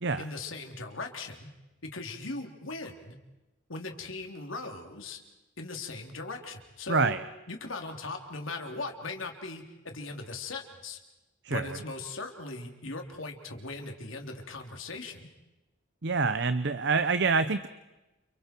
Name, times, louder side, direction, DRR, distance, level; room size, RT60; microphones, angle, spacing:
voice 1, 0.2-1.5 1.9-3.2 3.7-5.2 5.6-7.2 7.5-11.0 11.5-15.3, left 3 dB, 90° left, 3 dB, 3.4 m, -39 dB
voice 2, 6.9-7.2 11.4-11.8 16.0-17.7, right 4 dB, 60° right, 12 dB, 0.8 m, -26 dB
30.0 x 29.5 x 4.6 m, 1.0 s
head